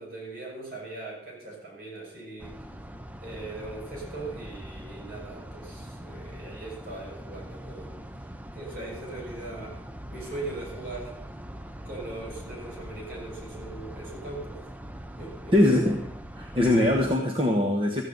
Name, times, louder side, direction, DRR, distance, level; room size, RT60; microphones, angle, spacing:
voice 1, 0.0-2.6 3.2-8.0 8.5-9.8 10.1-11.1 11.8-14.6 15.2-15.5, right 2 dB, 50° right, -2 dB, 6.0 m, -40 dB
sound 1, 2.4-17.2, right 1 dB, 10° right, 0.5 m, -42 dB
voice 2, 15.5-16.0 16.3-18.0, left 1 dB, 30° right, 1 dB, 1.3 m, -22 dB
15.0 x 14.5 x 4.0 m, 0.72 s
head